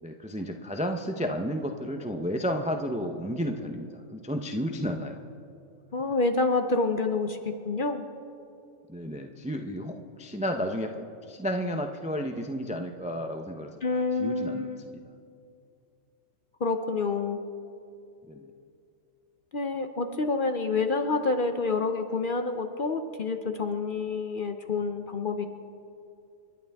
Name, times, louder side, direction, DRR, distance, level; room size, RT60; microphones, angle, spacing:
voice 1, 0.0-5.2 8.9-15.0 18.3-18.4, equal, 10° right, 5 dB, 0.4 m, -32 dB
voice 2, 5.9-8.1 13.8-14.8 16.6-17.4 19.5-25.4, left 3 dB, 50° left, 6 dB, 0.7 m, -28 dB
30.0 x 11.5 x 3.5 m, 2.6 s
omnidirectional pair, 1.5 m